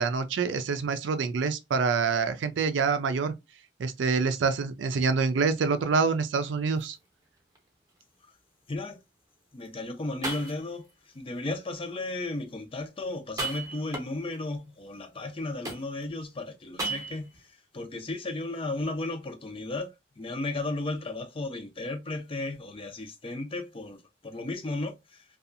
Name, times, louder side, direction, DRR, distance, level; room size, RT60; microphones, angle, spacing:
voice 1, 0.0-3.3 3.8-7.0, right 5 dB, 75° right, 0.4 m, -26 dB
sound 1, 5.9-6.2 6.8-6.9 7.6-7.7 9.7-9.8 10.2-10.9 13.2-14.4 15.6-16.2 16.8-17.4, right 3 dB, 20° right, 0.7 m, -35 dB
voice 2, 8.7-9.0 9.5-10.9 11.1-17.3 17.7-24.0 24.2-25.2, left 2 dB, 30° left, 0.5 m, -34 dB
2.6 x 2.3 x 2.4 m
head